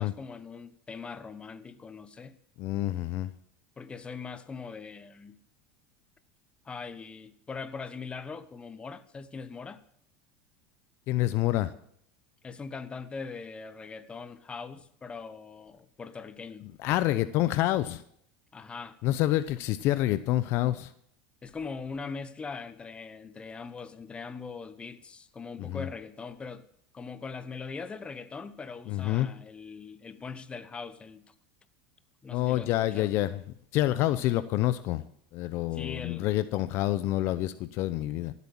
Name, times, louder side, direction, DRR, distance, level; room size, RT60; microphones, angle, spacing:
voice 1, 0.0-2.4 3.8-5.4 6.6-9.8 12.4-16.7 18.5-19.0 21.4-26.6 26.9-31.3 32.2-33.1 35.7-36.4, left 5 dB, 20° left, 1.1 m, -41 dB
voice 2, 2.6-3.3 11.1-11.7 16.8-18.0 19.0-20.9 25.6-25.9 28.9-29.3 32.3-33.4 33.7-35.0 35.3-38.3, left 15 dB, 55° left, 0.7 m, -27 dB
15.0 x 8.4 x 7.3 m
supercardioid pair, 110°, 5 cm